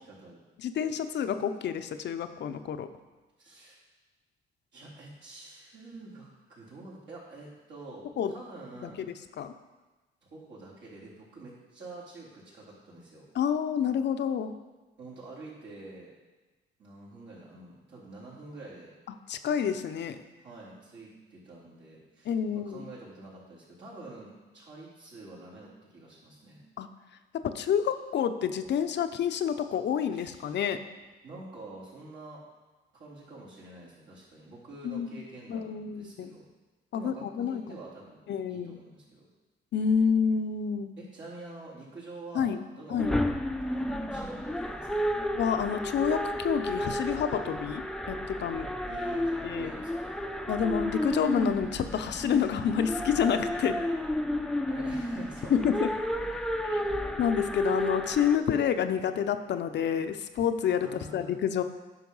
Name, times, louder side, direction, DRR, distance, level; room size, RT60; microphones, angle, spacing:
voice 1, 0.1-0.4 3.4-3.8 4.7-9.1 10.2-13.3 15.0-16.1 16.8-18.9 20.4-26.6 30.1-30.5 31.2-32.4 32.9-36.4 36.9-39.3 41.0-43.3 43.7-45.0 48.8-50.1 54.7-55.9 56.3-57.0 60.8-61.4, right 2 dB, 65° right, -6 dB, 3.5 m, -47 dB
voice 2, 0.6-2.9 8.2-8.3 8.8-8.9 9.4-9.5 13.4-14.5 19.3-20.2 22.3-22.8 26.8-26.9 27.3-30.8 34.8-35.1 35.5-36.3 36.9-37.6 38.3-38.8 39.7-40.9 42.3-42.6 42.9-43.2 45.4-47.8 48.1-48.7 49.4-49.7 50.5-53.8 55.5-55.9 56.7-56.8 57.2-61.6, left 8 dB, 60° left, 9 dB, 0.7 m, -28 dB
sound 1, 43.0-58.4, left 1 dB, 5° left, 0.6 m, -32 dB
9.5 x 5.7 x 5.5 m, 1.2 s
cardioid pair, 90°, 20 cm